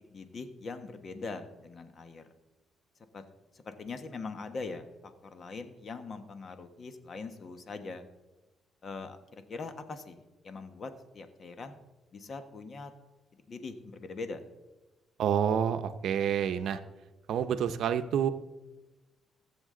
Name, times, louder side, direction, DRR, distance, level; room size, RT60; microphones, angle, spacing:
voice 1, 0.1-2.2 3.1-3.2 3.5-8.1 8.8-11.8 12.1-12.9 13.5-14.4, left 4 dB, 45° left, 8 dB, 1.2 m, -42 dB
voice 2, 15.2-16.8 17.3-18.3, right 8 dB, 75° right, 10 dB, 0.7 m, -28 dB
16.5 x 7.3 x 3.8 m, 1.1 s
cardioid pair, 90°, 0 cm